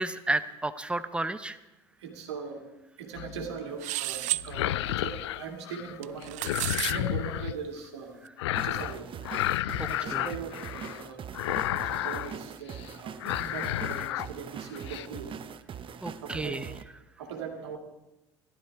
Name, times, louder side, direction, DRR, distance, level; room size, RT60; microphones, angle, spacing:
voice 1, 0.0-1.6 9.8-10.2 16.0-16.7, right 2 dB, 10° right, 12 dB, 0.8 m, -32 dB
voice 2, 2.0-2.6 3.0-6.4 6.8-8.2 8.5-9.1 9.8-11.2 11.4-15.4 16.2-16.6 17.2-17.8, right 6 dB, 85° right, 3 dB, 2.4 m, -40 dB
sound 1, 3.2-3.6 4.4-6.0 6.2-7.5 8.4-9.0 9.2-11.0 11.3-12.4 12.7-12.9 13.2-14.3 14.6-15.1, left 14 dB, 85° left, 0.4 m, -31 dB
sound 2, 3.8-4.4 6.0-7.0, right 19 dB, 60° right, 0.4 m, -31 dB
sound 3, 8.5-16.8, right 8 dB, 40° right, 0.8 m, -42 dB
14.5 x 12.5 x 4.7 m, 0.98 s
hypercardioid pair, 70°, 14 cm